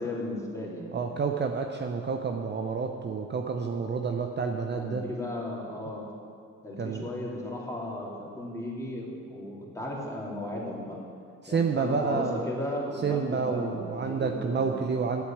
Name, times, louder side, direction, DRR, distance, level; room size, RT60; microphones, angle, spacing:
voice 1, 0.0-0.9 4.7-6.1 6.6-11.0 11.5-14.8, left 1 dB, 10° left, -4 dB, 3.0 m, -35 dB
voice 2, 0.9-5.0 6.8-7.1 11.4-12.4 13.0-15.2, right 5 dB, 35° right, 3 dB, 0.7 m, -29 dB
8.4 x 8.2 x 8.6 m, 2.3 s
cardioid pair, 90°, 30 cm